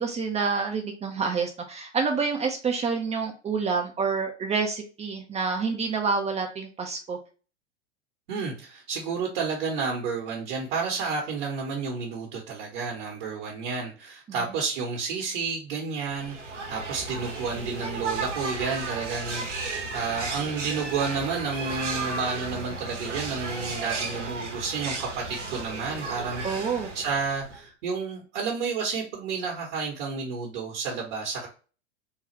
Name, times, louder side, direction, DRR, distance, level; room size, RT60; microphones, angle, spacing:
voice 1, 0.0-7.2 26.4-26.9, right 5 dB, 20° right, 3 dB, 0.5 m, -28 dB
voice 2, 8.3-31.5, right 5 dB, 60° right, -1 dB, 1.1 m, -31 dB
sound 1, 16.1-27.7, right 3 dB, 90° right, 1.0 m, -34 dB
3.7 x 2.4 x 3.0 m, 0.36 s
hypercardioid pair, 95°, 35 cm